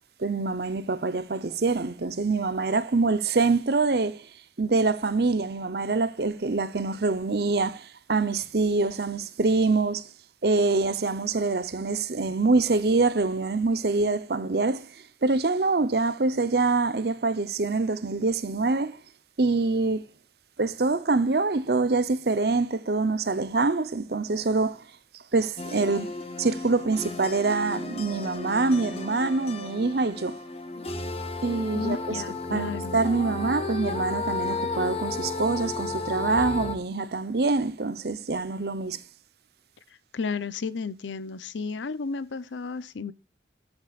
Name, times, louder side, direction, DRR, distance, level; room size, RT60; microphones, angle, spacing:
voice 1, 0.2-4.3 4.6-10.1 10.4-14.9 15.2-19.0 19.4-20.0 20.6-24.9 25.3-26.1 26.4-30.4 31.4-32.2 32.5-39.0, right 3 dB, 60° right, 0.7 m, -25 dB
sound 1, 25.6-36.8, left 3 dB, 35° left, 1.2 m, -33 dB
voice 2, 31.7-33.0 40.1-43.1, left 4 dB, 85° left, 0.6 m, -33 dB
13.0 x 7.8 x 2.4 m
head